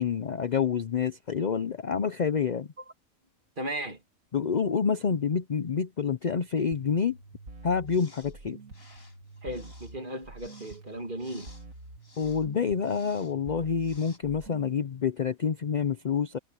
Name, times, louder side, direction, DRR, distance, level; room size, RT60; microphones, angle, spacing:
voice 1, 0.0-2.7 4.3-7.2 7.6-8.6 12.2-16.4, left 6 dB, 45° left, 0.6 m, -28 dB
voice 2, 3.6-4.0 9.4-11.5, right 1 dB, 35° right, 2.7 m, -36 dB
sound 1, 6.7-14.7, right 2 dB, 70° right, 3.0 m, -47 dB
sound 2, 7.9-8.3 8.7-12.5 12.8-13.3 13.8-14.2, left 2 dB, 70° left, 6.4 m, -56 dB
omnidirectional pair, 1.5 m